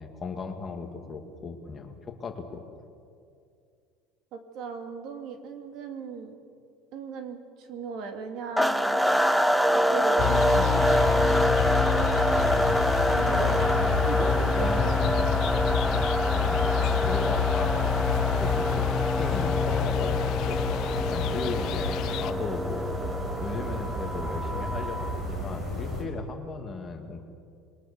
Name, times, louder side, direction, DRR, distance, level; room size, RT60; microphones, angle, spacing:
voice 1, 0.0-2.6 10.6-10.7 14.5-15.2 15.9-18.9 19.1-23.0 23.4-27.2, left 4 dB, 20° left, 4 dB, 2.2 m, -36 dB
voice 2, 4.3-6.4 6.9-9.0 9.7-15.3 21.6-21.7, right 5 dB, 50° right, 5 dB, 2.6 m, -38 dB
sound 1, 8.6-25.3, equal, ahead, 0.6 m, -26 dB
sound 2, 10.2-22.3, left 12 dB, 50° left, 0.9 m, -28 dB
sound 3, 12.3-26.0, equal, 20° right, 5.6 m, -34 dB
27.5 x 22.0 x 6.8 m, 2.3 s
cardioid pair, 155°, 0 cm